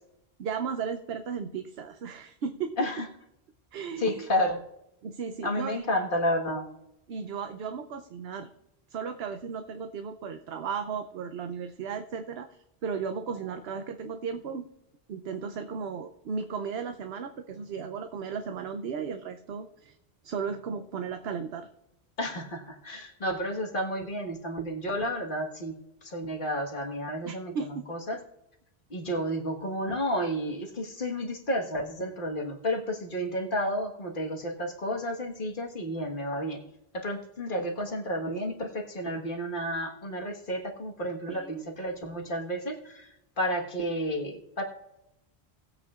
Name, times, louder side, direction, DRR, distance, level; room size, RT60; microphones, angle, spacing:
voice 1, 0.4-2.8 3.7-4.3 5.0-5.8 7.1-8.5 8.9-14.7 15.1-20.0 20.2-21.7 27.3-27.9 41.3-41.6, right 6 dB, 75° right, 8 dB, 0.9 m, -35 dB
voice 2, 4.0-4.6 5.4-6.7 22.2-25.7 26.0-28.2 28.9-36.6 36.9-44.6, equal, 55° left, 2 dB, 1.7 m, -31 dB
19.0 x 8.3 x 2.4 m, 0.85 s
omnidirectional pair, 1.1 m